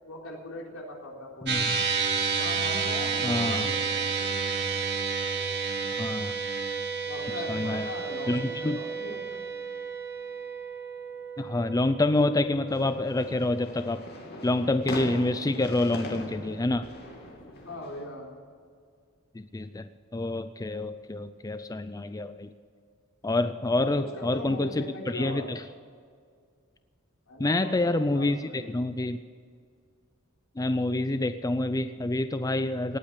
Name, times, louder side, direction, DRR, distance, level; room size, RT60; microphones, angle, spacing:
voice 1, 0.0-1.6 2.3-4.1 7.0-9.4 17.6-18.3 23.7-25.5 27.3-28.7, left 1 dB, 80° left, -1 dB, 3.9 m, -40 dB
voice 2, 1.4-1.8 3.2-3.7 6.0-6.4 7.5-7.9 8.3-8.8 11.4-14.1 14.4-16.9 19.3-22.5 23.2-25.6 27.4-29.2 30.6-33.0, left 2 dB, 15° left, 11 dB, 0.4 m, -27 dB
sound 1, 1.5-14.0, right 5 dB, 55° right, 1.7 m, -31 dB
sound 2, 12.7-18.0, left 1 dB, 55° left, 2.6 m, -41 dB
18.5 x 8.8 x 8.1 m, 2.1 s
head